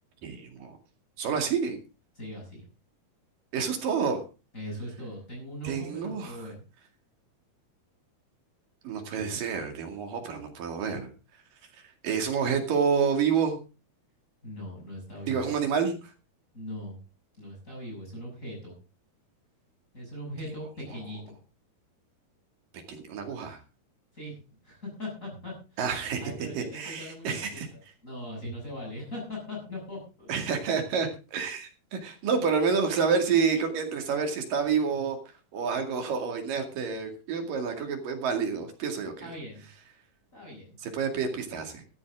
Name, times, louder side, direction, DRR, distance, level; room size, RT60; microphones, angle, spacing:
voice 1, 0.2-0.8 1.2-1.8 3.5-4.2 5.6-6.5 8.8-11.1 12.0-13.6 15.3-16.0 22.9-23.6 25.8-27.7 30.3-35.2 35.5-39.3 40.8-41.8, right 6 dB, 60° right, 5 dB, 3.8 m, -28 dB
voice 2, 2.2-2.6 4.5-6.6 14.4-15.5 16.5-17.0 17.4-18.7 19.9-21.2 24.1-25.8 26.2-30.5 39.2-39.6 40.3-40.7, left 1 dB, 20° left, -2 dB, 7.5 m, -40 dB
14.0 x 14.0 x 3.7 m, 0.31 s
omnidirectional pair, 4.6 m